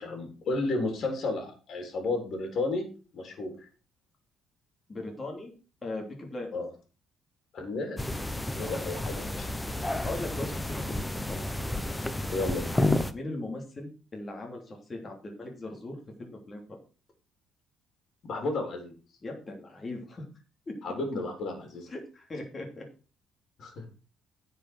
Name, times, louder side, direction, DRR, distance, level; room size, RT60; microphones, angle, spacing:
voice 1, 0.0-2.8 3.1-3.5 6.5-6.7 7.5-8.1 8.6-9.5 12.3-12.8 18.2-18.9 20.8-21.9 23.6-23.8, left 2 dB, 50° left, 3 dB, 3.7 m, -32 dB
voice 2, 4.9-5.5 5.8-6.5 8.6-8.8 10.0-11.0 11.3-11.5 13.1-16.8 19.2-20.2 20.7-20.8 21.9-22.9, left 2 dB, 25° left, 1 dB, 3.0 m, -39 dB
sound 1, 8.0-13.1, left 1 dB, 10° left, 0.8 m, -31 dB
10.5 x 5.7 x 6.2 m, 0.36 s
cardioid pair, 125°, 0 cm